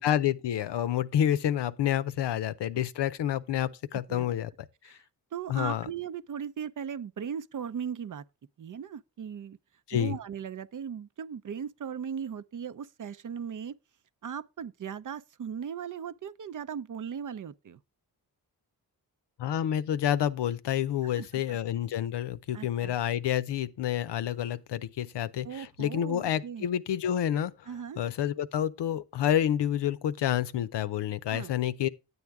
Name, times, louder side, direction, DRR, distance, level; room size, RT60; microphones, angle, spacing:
voice 1, 0.0-4.5 4.8-5.0 5.5-5.9 9.9-10.2 19.4-27.7 28.0-31.9, left 10 dB, 75° left, 0.7 m, -29 dB
voice 2, 5.3-8.2 8.6-9.6 9.9-13.8 14.2-17.8 21.0-21.6 22.5-22.9 25.4-26.7 27.7-28.0 31.3-31.5, right 7 dB, 45° right, 0.6 m, -38 dB
9.8 x 7.9 x 3.5 m
cardioid pair, 50°, 42 cm